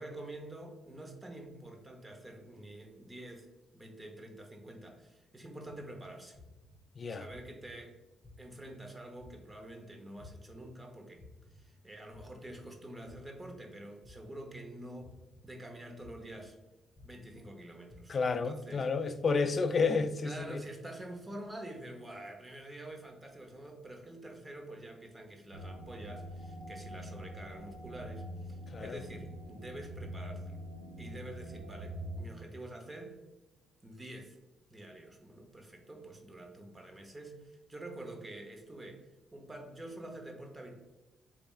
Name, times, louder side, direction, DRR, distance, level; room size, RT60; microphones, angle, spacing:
voice 1, 0.0-3.5 3.7-6.4 7.1-8.0 8.4-11.3 11.5-15.2 15.4-16.6 17.0-18.9 19.5-19.6 20.2-30.6 31.0-33.2 33.8-34.4 34.7-40.8, right 1 dB, 20° right, 0.8 m, -47 dB
sound 1, 5.6-5.8 6.3-6.8 7.3-7.7 8.2-8.6 9.2-9.6 10.2-10.6 11.2-11.6 12.1-12.6 13.1-13.5 14.0-14.4 15.0-15.4 16.0-16.4 16.9-17.4 17.9-18.3, left 3 dB, 20° left, 1.3 m, -55 dB
voice 2, 18.1-20.6 28.7-29.0, left 4 dB, 40° left, 0.3 m, -31 dB
sound 2, 25.5-32.3, equal, 85° right, 0.6 m, -44 dB
4.2 x 3.3 x 2.4 m
cardioid pair, 90°, 0 cm